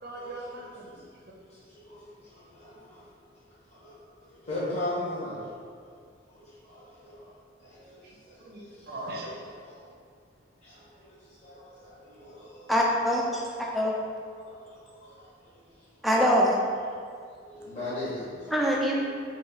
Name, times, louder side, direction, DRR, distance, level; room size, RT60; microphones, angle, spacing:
voice 1, 0.0-1.0 8.0-8.2 8.4-9.3, right 1 dB, 50° right, -2 dB, 0.6 m, -40 dB
voice 2, 1.5-3.0 3.7-3.9 4.2-5.6 6.3-9.0 9.7-9.9 10.6-12.7 13.3-13.7 14.4-15.6 17.4-18.5, left 1 dB, 35° left, -11 dB, 1.2 m, -39 dB
voice 3, 12.7-13.9 16.0-16.6 18.5-19.2, equal, ahead, -4 dB, 0.4 m, -24 dB
2.9 x 2.8 x 4.5 m, 2.2 s
head